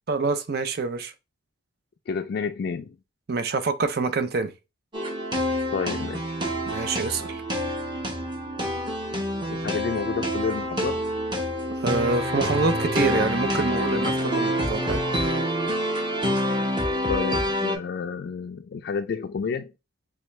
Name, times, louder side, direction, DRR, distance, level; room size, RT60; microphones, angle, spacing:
voice 1, 0.1-1.1 3.3-4.5 6.7-7.4 11.7-15.0, right 4 dB, 55° right, 0.5 m, -26 dB
voice 2, 2.1-3.0 5.7-6.3 9.5-11.0 17.1-19.7, left 5 dB, 55° left, 0.3 m, -30 dB
sound 1, 4.9-17.8, equal, 25° right, 0.9 m, -27 dB
4.4 x 2.3 x 3.1 m
head